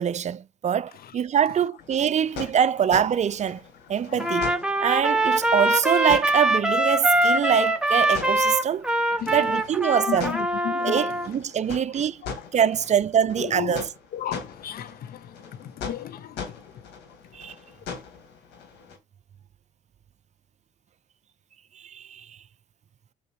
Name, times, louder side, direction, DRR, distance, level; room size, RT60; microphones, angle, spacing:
voice 1, 0.0-3.6 3.9-4.5 4.8-8.9 9.3-10.4 10.8-12.2 12.5-13.9 17.3-17.5 21.8-22.3, right 8 dB, 40° right, 0.5 m, -24 dB
sound 1, 1.8-19.0, left 5 dB, 80° left, 1.9 m, -41 dB
Trumpet, 4.2-11.3, right 1 dB, 5° right, 1.1 m, -23 dB
voice 2, 10.1-11.0 13.4-13.8 14.1-16.3, left 10 dB, 60° left, 0.7 m, -33 dB
5.8 x 4.0 x 4.6 m
supercardioid pair, 70°, 17 cm